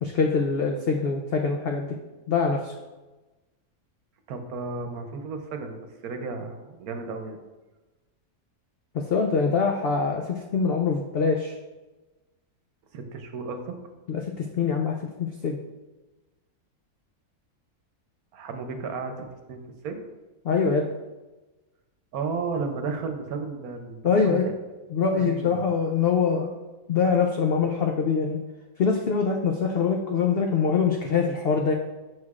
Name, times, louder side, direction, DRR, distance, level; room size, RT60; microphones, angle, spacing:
voice 1, 0.0-2.0 2.3-2.7 8.9-11.6 14.1-15.6 20.4-20.9 24.0-24.5 24.9-26.5 26.9-28.4 28.8-31.7, left 5 dB, 80° left, 3 dB, 0.5 m, -24 dB
voice 2, 4.3-7.4 12.9-13.7 18.3-20.0 22.1-24.4 25.2-25.7, right 4 dB, 80° right, 6 dB, 1.2 m, -33 dB
6.4 x 6.4 x 2.4 m, 1.1 s
omnidirectional pair, 1.6 m